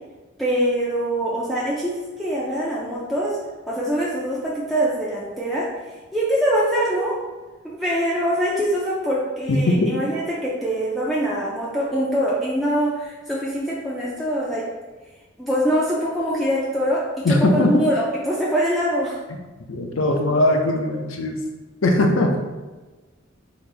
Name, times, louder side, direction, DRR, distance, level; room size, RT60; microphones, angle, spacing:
voice 1, 0.4-3.4 3.7-5.6 6.1-7.1 7.6-14.6 15.4-17.0 17.5-19.2, equal, ahead, -7 dB, 0.4 m, -23 dB
voice 2, 9.5-9.9 17.2-17.9 19.3-19.4 19.7-21.4 21.8-22.4, left 1 dB, 75° left, 3 dB, 0.6 m, -20 dB
4.2 x 2.5 x 3.3 m, 1.2 s
head